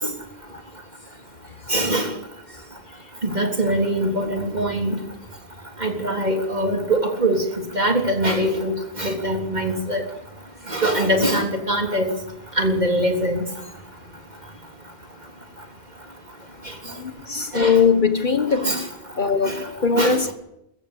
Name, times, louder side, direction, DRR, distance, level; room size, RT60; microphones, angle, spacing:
voice 1, 1.7-2.1 3.2-5.0 5.8-7.4 7.7-10.0 10.7-12.1 12.6-13.4 17.5-17.8 18.6-18.8 19.5-19.6 20.0-20.2, right 1 dB, 40° right, 3.6 m, -22 dB
voice 2, 17.0-18.7 19.1-20.3, left 5 dB, 50° left, 1.3 m, -20 dB
22.5 x 14.0 x 8.3 m
omnidirectional pair, 1.1 m